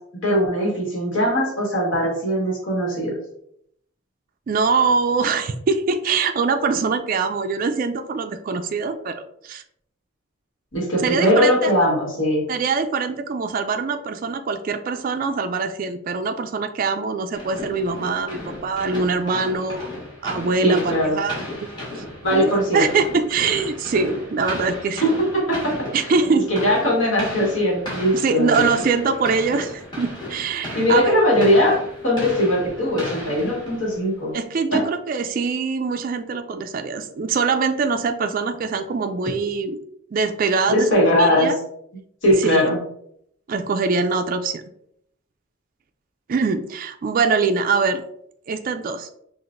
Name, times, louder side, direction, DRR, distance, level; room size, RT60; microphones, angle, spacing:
voice 1, 0.1-3.2 10.7-12.4 20.6-21.2 22.2-22.9 25.0-26.1 26.5-28.7 30.7-34.4 34.7-34.8 40.7-41.5 42.2-42.8, equal, 65° left, -3 dB, 1.5 m, -20 dB
voice 2, 4.5-9.6 11.0-11.7 12.5-19.9 20.2-21.4 22.0-22.1 22.3-25.0 25.9-26.5 28.1-31.1 34.3-39.8 40.1-41.6 42.4-42.7 43.5-44.6 46.3-48.0 48.5-49.1, right 4 dB, 45° right, 7 dB, 0.3 m, -23 dB
sound 1, 17.3-34.1, left 1 dB, 20° left, 1.4 m, -34 dB
5.7 x 2.5 x 2.5 m, 0.71 s
head